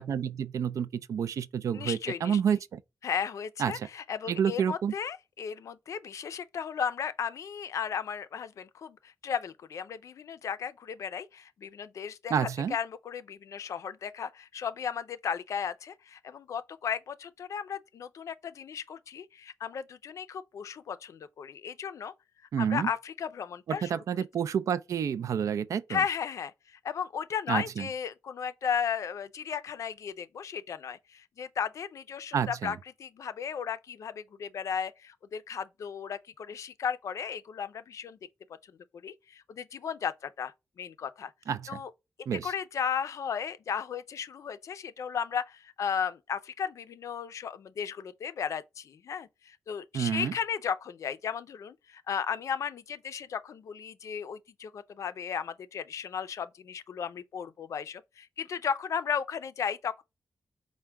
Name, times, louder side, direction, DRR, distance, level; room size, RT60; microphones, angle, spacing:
voice 1, 0.0-2.8 3.6-3.9 4.3-4.9 12.3-12.8 22.5-22.9 23.7-26.0 27.5-27.9 32.3-32.8 41.5-41.8 42.3-42.5 49.9-50.3, right 8 dB, 80° right, 0.3 m, -29 dB
voice 2, 1.7-2.4 3.0-12.3 12.7-22.1 22.6-23.9 25.9-38.2 39.0-41.3 41.7-41.9 42.4-60.0, left 7 dB, 75° left, 0.4 m, -35 dB
4.6 x 2.1 x 3.3 m
wide cardioid pair, 160°, 5 cm